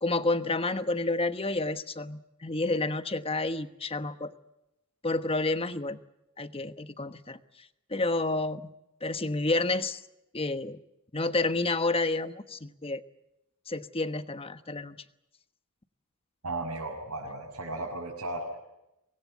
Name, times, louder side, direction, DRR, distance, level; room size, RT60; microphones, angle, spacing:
voice 1, 0.0-4.3 5.0-6.0 6.4-7.4 7.9-8.7 9.0-10.0 10.3-10.8 11.1-13.0 13.7-15.0, left 2 dB, 25° left, 11 dB, 1.2 m, -29 dB
voice 2, 16.4-18.6, right 2 dB, 90° right, -5 dB, 6.5 m, -35 dB
25.0 x 20.5 x 8.3 m, 0.88 s
head